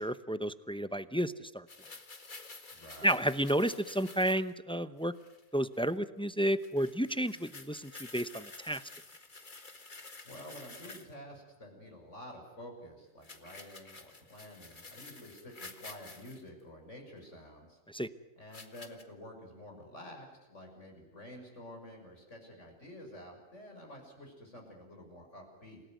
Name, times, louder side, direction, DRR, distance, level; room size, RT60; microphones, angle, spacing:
voice 1, 0.0-1.7 3.0-5.1 5.5-8.8 17.9-18.1, right 1 dB, 5° left, 12 dB, 0.5 m, -31 dB
sound 1, 1.7-4.5 5.0-5.4 5.7-5.9 6.3-6.4 6.6-11.1 13.2-16.4 17.2-17.3 18.5-19.0, left 3 dB, 35° left, 2.0 m, -50 dB
voice 2, 2.7-3.2 10.2-17.8 18.4-25.8, equal, 55° left, 2 dB, 6.9 m, -50 dB
29.0 x 18.0 x 9.4 m, 0.99 s
omnidirectional pair, 1.5 m